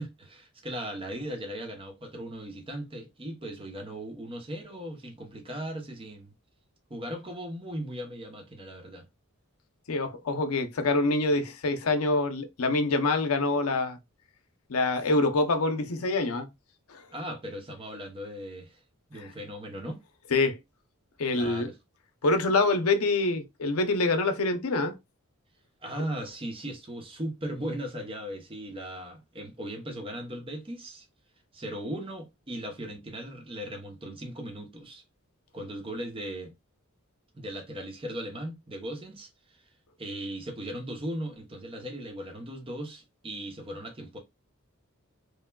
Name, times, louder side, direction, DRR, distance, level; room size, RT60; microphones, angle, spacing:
voice 1, 0.0-6.3 6.9-9.1 17.1-18.8 19.1-20.0 21.3-21.7 25.8-31.1 31.5-35.0 35.5-36.5 37.3-39.6 40.0-44.2, right 1 dB, 25° right, 0.8 m, -38 dB
voice 2, 9.9-14.0 14.7-16.5 16.9-17.1 19.2-19.3 20.3-20.6 21.2-21.7 22.2-25.0, left 3 dB, 80° left, 0.6 m, -26 dB
3.1 x 2.2 x 2.2 m
head